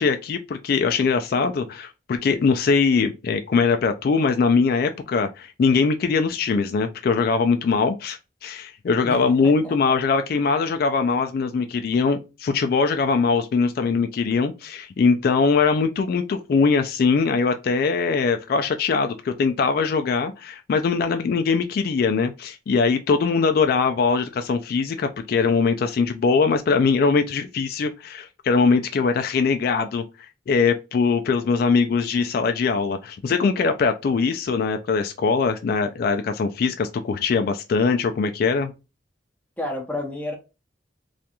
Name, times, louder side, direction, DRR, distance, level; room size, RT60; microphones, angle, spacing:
voice 1, 0.0-38.7, left 5 dB, 60° left, 0.3 m, -22 dB
voice 2, 9.0-9.7 39.6-40.4, left 1 dB, 10° left, 0.7 m, -31 dB
2.4 x 2.2 x 2.7 m
head